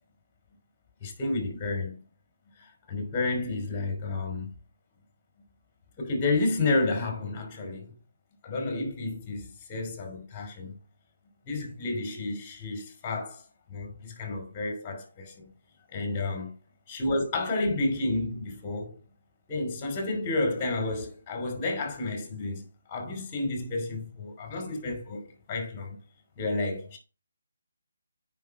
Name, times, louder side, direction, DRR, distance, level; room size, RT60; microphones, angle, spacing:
voice 1, 1.0-2.0 2.6-4.5 6.0-7.9 8.4-10.7 11.5-13.4 13.7-15.5 15.9-16.5 16.9-18.9 19.5-26.0 26.4-27.0, left 2 dB, 20° left, 3.3 m, -31 dB
9.7 x 5.3 x 4.8 m
figure-of-eight pair, 155°, 0 cm